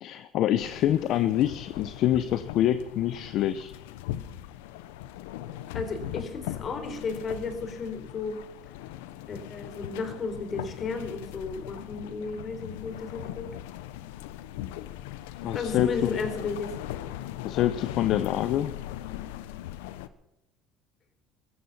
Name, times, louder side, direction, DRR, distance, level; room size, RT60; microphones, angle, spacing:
voice 1, 0.0-3.7 15.4-16.1 17.4-18.7, left 12 dB, 60° left, 12 dB, 0.8 m, -26 dB
sound 1, 0.6-20.1, left 13 dB, 90° left, 0.9 m, -39 dB
voice 2, 5.7-8.4 9.3-13.5 15.5-16.7, left 4 dB, 40° left, 7 dB, 4.0 m, -34 dB
16.0 x 14.0 x 6.0 m, 0.87 s
supercardioid pair, 100°, 0 cm